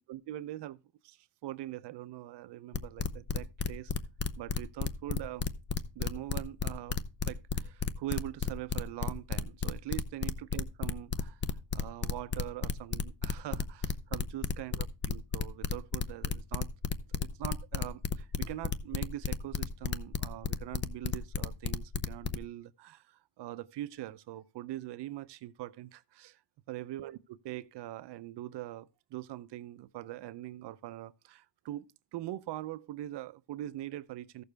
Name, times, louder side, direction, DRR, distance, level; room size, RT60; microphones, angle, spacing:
voice 1, 0.0-3.9 4.4-5.5 5.9-7.0 7.3-16.7 17.1-26.4 26.7-34.4, right 14 dB, 65° right, 0.7 m, -42 dB
sound 1, 2.7-22.4, left 6 dB, 25° left, 0.5 m, -32 dB
14.5 x 6.8 x 3.3 m
cardioid pair, 160°, 44 cm